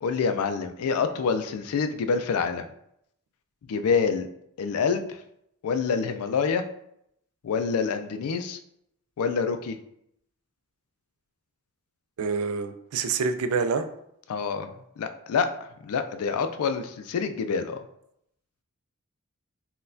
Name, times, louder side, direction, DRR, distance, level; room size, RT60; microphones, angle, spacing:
voice 1, 0.0-2.7 3.7-4.3 4.6-5.2 5.6-6.6 7.4-8.6 9.2-9.8 14.3-14.7 15.0-17.8, left 5 dB, 80° left, 9 dB, 0.3 m, -27 dB
voice 2, 12.2-13.9, right 5 dB, 75° right, 9 dB, 0.3 m, -27 dB
3.9 x 2.2 x 2.6 m, 0.75 s
head